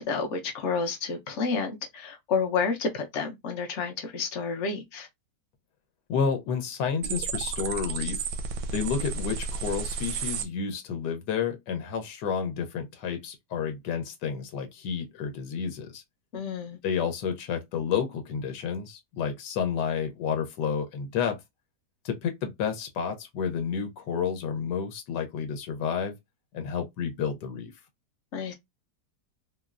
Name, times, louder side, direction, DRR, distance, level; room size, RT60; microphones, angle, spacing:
voice 1, 0.0-5.1 16.3-16.8 28.3-28.5, left 5 dB, 60° left, 0.8 m, -30 dB
voice 2, 6.1-8.3 8.7-16.0 16.8-21.4 22.0-26.1 26.5-27.7, left 6 dB, 90° left, 1.3 m, -30 dB
sound 1, 7.0-10.4, right 5 dB, 85° right, 1.2 m, -32 dB
3.7 x 2.0 x 2.3 m
omnidirectional pair, 1.8 m